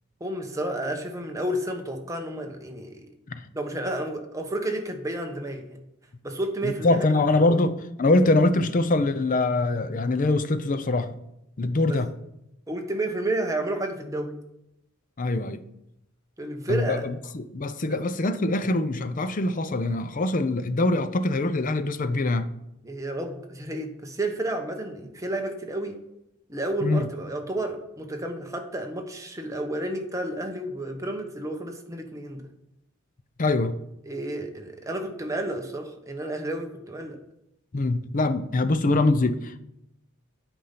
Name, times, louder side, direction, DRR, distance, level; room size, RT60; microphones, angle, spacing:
voice 1, 0.2-3.1 3.5-5.8 6.2-7.1 7.5-7.6 11.9-12.0 12.7-14.5 16.4-17.1 17.9-18.0 22.8-26.0 26.5-32.5 34.0-37.2, right 1 dB, 15° right, 1.0 m, -31 dB
voice 2, 6.6-11.1 11.6-12.1 15.2-15.6 16.7-22.5 26.8-27.1 33.4-33.8 37.7-39.6, left 2 dB, 40° left, 0.6 m, -24 dB
8.5 x 5.4 x 5.8 m
head